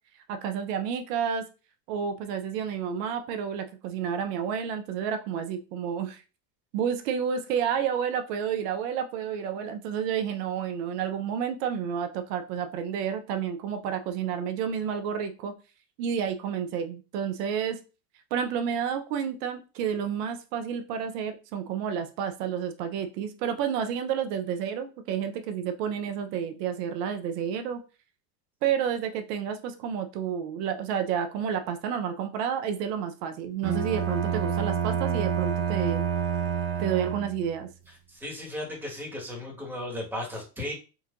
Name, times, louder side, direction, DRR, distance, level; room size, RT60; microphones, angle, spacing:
voice 1, 0.3-1.4 1.9-6.2 6.7-15.5 16.0-17.8 18.3-27.8 28.6-36.0 36.8-37.7, right 8 dB, 70° right, 8 dB, 0.9 m, -30 dB
Bowed string instrument, 33.6-37.6, right 8 dB, 30° right, 0.7 m, -28 dB
voice 2, 37.9-40.7, left 1 dB, 5° right, -2 dB, 1.6 m, -36 dB
4.2 x 2.8 x 2.5 m, 0.33 s
supercardioid pair, 100°, 49 cm